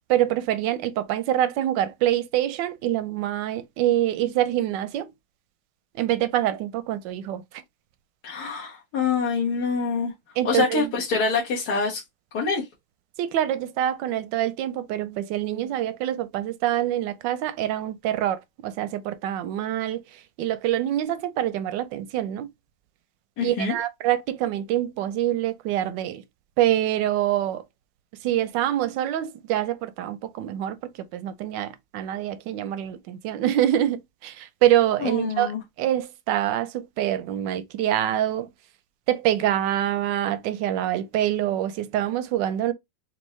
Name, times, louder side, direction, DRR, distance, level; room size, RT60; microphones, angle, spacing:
voice 1, 0.1-5.1 5.9-7.6 10.4-10.9 13.2-22.5 23.4-26.2 26.6-27.6 28.2-35.5 35.8-38.5 39.1-42.7, right 12 dB, 90° right, 1.3 m, -25 dB
voice 2, 8.2-10.1 10.4-12.0 12.3-12.6 23.4-23.7 35.0-35.6, left 5 dB, 65° left, 1.8 m, -25 dB
4.5 x 2.7 x 3.1 m
omnidirectional pair, 1.9 m